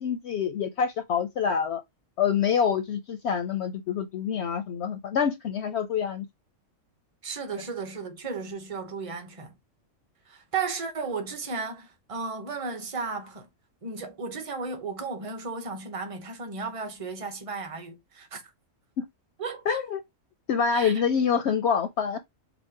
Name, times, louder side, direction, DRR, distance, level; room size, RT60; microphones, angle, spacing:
voice 1, 0.0-1.8 2.2-6.3 19.7-20.0 20.5-22.2, left 7 dB, 65° left, 0.7 m, -26 dB
voice 2, 7.2-9.5 10.3-13.5 13.8-18.4 19.4-19.8 20.7-20.9, right 4 dB, 30° right, 0.8 m, -34 dB
5.0 x 2.1 x 4.8 m
omnidirectional pair, 1.4 m